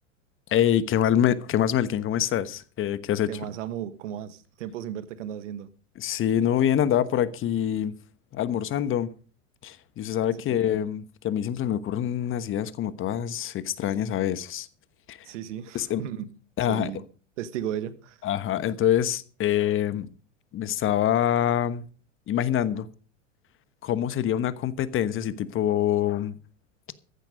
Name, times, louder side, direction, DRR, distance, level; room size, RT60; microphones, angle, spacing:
voice 1, 0.5-3.4 6.0-7.9 8.3-9.1 9.6-14.7 15.1-15.2 15.7-16.0 16.6-16.9 18.2-20.1 20.5-21.8 22.3-22.9 23.8-26.3, left 10 dB, 35° left, 1.2 m, -25 dB
voice 2, 3.3-5.7 15.2-16.3 16.7-17.0 17.4-18.2, right 10 dB, 70° right, 1.5 m, -35 dB
15.0 x 10.5 x 5.1 m
hypercardioid pair, 100°, 38 cm